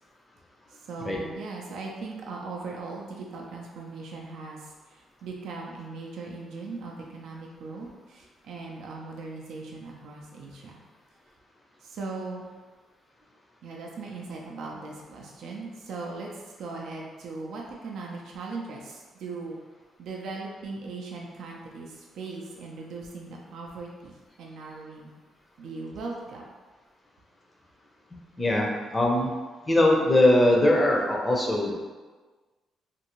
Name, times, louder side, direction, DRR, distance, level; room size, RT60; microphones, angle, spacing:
voice 1, 0.7-10.8 11.8-12.5 13.6-19.6 20.0-25.1 25.6-26.4, right 3 dB, 75° right, -1 dB, 0.4 m, -39 dB
voice 2, 28.4-29.3 29.7-31.8, left 1 dB, 20° left, -1 dB, 0.6 m, -21 dB
2.6 x 2.6 x 2.9 m, 1.3 s
cardioid pair, 90°, 0 cm